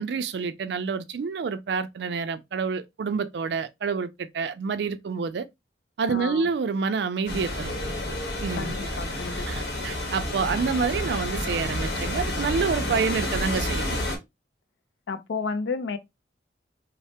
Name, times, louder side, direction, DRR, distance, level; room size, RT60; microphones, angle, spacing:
voice 1, 0.0-5.5 6.0-7.7 8.4-8.9 9.5-14.0, right 5 dB, 70° right, 0.4 m, -28 dB
voice 2, 6.1-6.5 8.6-9.6 15.1-16.0, left 4 dB, 85° left, 0.4 m, -32 dB
sound 1, 7.3-14.2, left 1 dB, 65° left, 0.9 m, -29 dB
3.2 x 2.0 x 2.7 m
head